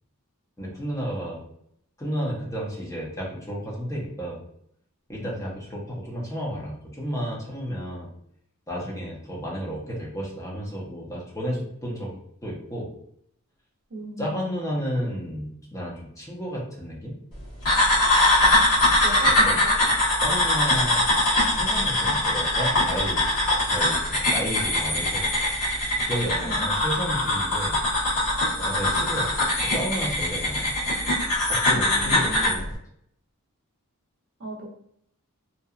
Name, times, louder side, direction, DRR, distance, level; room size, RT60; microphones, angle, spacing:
voice 1, 0.6-1.5 2.0-4.4 5.1-8.1 8.7-12.9 14.2-17.2 19.2-19.5 20.2-21.0 21.4-23.2 23.6-25.3 25.9-27.8 28.6-29.3 29.6-30.7 31.5-32.7, equal, 15° left, -4 dB, 0.6 m, -32 dB
voice 2, 13.9-14.8 19.0-19.7 24.6-24.7 26.4-26.7 31.7-32.7 34.4-34.7, equal, 60° right, -1 dB, 0.6 m, -37 dB
sound 1, 17.7-32.6, left 1 dB, 90° left, 1.3 m, -22 dB
2.8 x 2.2 x 2.3 m, 0.71 s
head